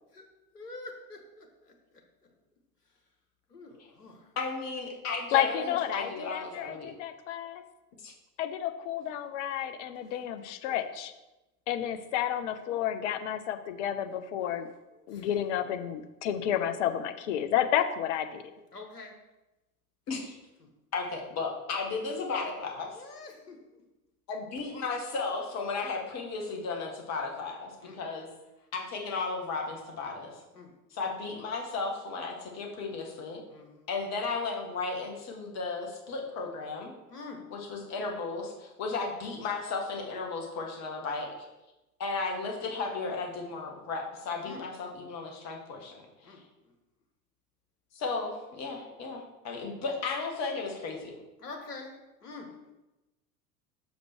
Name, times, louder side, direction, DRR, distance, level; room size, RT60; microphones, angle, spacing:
voice 1, 0.5-2.0 3.5-4.3 14.9-15.5 18.7-19.1 20.6-20.7 22.9-23.8 27.8-28.0 30.5-30.7 33.5-33.9 37.1-37.4 44.4-44.6 46.2-46.7 51.4-52.7, left 3 dB, 85° left, 2 dB, 1.4 m, -46 dB
voice 2, 4.4-6.9 8.0-8.1 20.1-20.3 20.9-23.0 24.3-28.3 28.7-30.3 30.9-33.4 33.9-36.9 37.5-41.3 42.0-46.4 47.9-51.2, left 4 dB, 35° left, 1 dB, 1.7 m, -35 dB
voice 3, 5.3-7.6 8.4-11.1 11.7-14.7 15.1-18.4, left 10 dB, 50° left, 9 dB, 0.7 m, -31 dB
6.5 x 5.1 x 4.5 m, 1.0 s
figure-of-eight pair, 80°, 46 cm